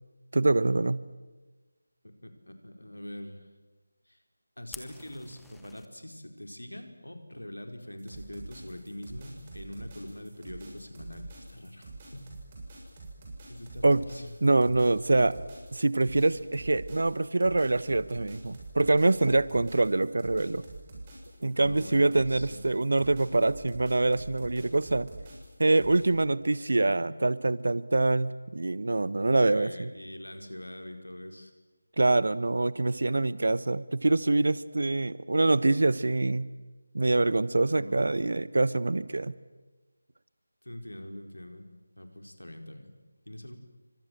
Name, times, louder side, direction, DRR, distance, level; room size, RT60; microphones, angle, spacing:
voice 1, 0.3-1.0 13.8-14.0 14.4-15.4 15.7-20.6 21.4-25.1 25.6-29.9 32.0-36.5 36.9-39.3, right 2 dB, 55° right, 18 dB, 1.2 m, -25 dB
voice 2, 2.0-3.5 4.1-4.2 4.6-12.3 12.8-12.9 13.5-14.3 21.5-22.6 26.7-27.0 29.4-31.5 37.7-38.2 40.6-41.7 42.0-42.9 43.2-43.6, left 1 dB, 75° left, 6 dB, 4.7 m, -43 dB
Fire, 4.7-5.9, left 4 dB, 5° left, 1.0 m, -47 dB
sound 1, 8.0-26.0, right 2 dB, 25° right, 7.5 m, -46 dB
29.5 x 25.0 x 7.9 m, 1.2 s
figure-of-eight pair, 160°, 0 cm